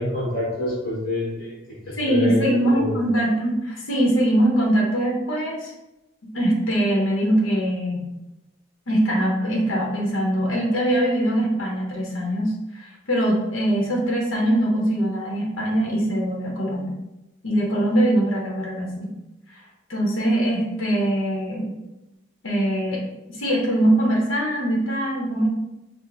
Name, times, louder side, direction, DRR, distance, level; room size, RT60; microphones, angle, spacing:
voice 1, 0.0-1.5 1.8-3.0, left 1 dB, 50° left, -8 dB, 1.2 m, -26 dB
voice 2, 2.0-5.7 6.3-8.0 8.9-16.9 17.4-19.1 19.9-21.7 22.4-23.0 23.3-25.5, right 1 dB, 80° left, -2 dB, 0.9 m, -22 dB
4.9 x 2.0 x 3.7 m, 0.96 s
head